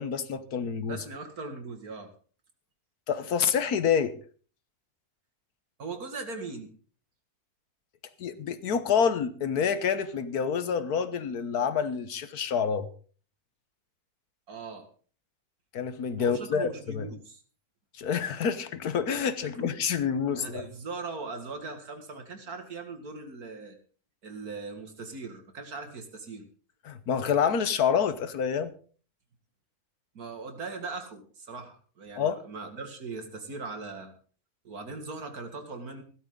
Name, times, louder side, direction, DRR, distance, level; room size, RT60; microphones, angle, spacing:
voice 1, 0.0-1.0 3.1-4.1 8.2-12.9 15.7-17.1 18.0-20.7 26.8-28.7 32.1-32.4, left 7 dB, 80° left, 1.6 m, -27 dB
voice 2, 0.9-2.1 5.8-6.7 14.5-14.9 16.2-17.4 19.6-19.7 20.3-23.8 24.2-26.5 30.1-34.1 34.6-36.0, right 3 dB, 75° right, 2.6 m, -40 dB
16.0 x 12.5 x 3.9 m
omnidirectional pair, 1.6 m